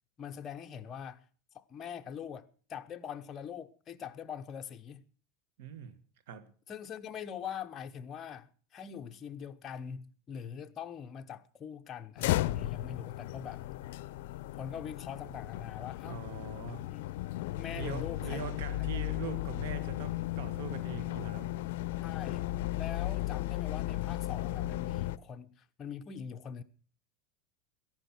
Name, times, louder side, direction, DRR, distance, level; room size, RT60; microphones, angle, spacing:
voice 1, 0.2-1.2 1.5-5.0 6.7-13.7 14.6-16.2 16.9-17.0 17.5-18.4 18.8-18.9 19.2-19.3 22.0-22.5 22.8-26.6, left 7 dB, 30° left, 1.0 m, -43 dB
voice 2, 5.6-6.0 6.3-6.5 16.1-16.9 17.7-21.5, right 7 dB, 75° right, 1.8 m, -42 dB
sound 1, 12.2-25.2, left 16 dB, 75° left, 0.5 m, -35 dB
14.0 x 11.0 x 6.0 m
supercardioid pair, 135°, 0 cm